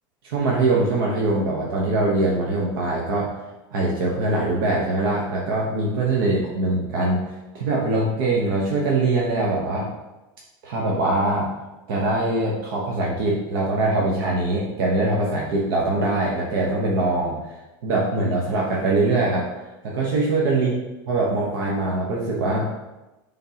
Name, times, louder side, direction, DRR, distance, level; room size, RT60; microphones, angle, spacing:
voice 1, 0.2-3.3 3.7-7.2 7.5-9.9 10.6-11.5 11.9-17.6 17.8-19.5 19.8-20.8 21.1-22.7, right 2 dB, 85° right, -3 dB, 1.1 m, -22 dB
9.3 x 3.7 x 2.9 m, 1.1 s
cardioid pair, 175°, 11 cm